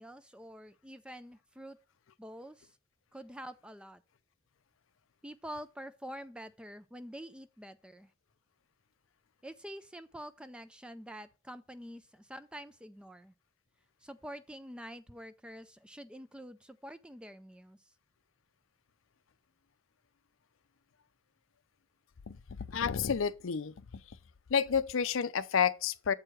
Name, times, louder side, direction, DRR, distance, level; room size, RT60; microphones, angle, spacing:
voice 1, 0.0-1.8 2.2-2.8 3.1-4.0 5.2-8.1 9.4-13.3 14.0-17.9, equal, 5° right, 0.3 m, -47 dB
voice 2, 22.3-23.7 24.5-26.1, left 7 dB, 75° left, 0.5 m, -30 dB
7.6 x 4.6 x 6.2 m
head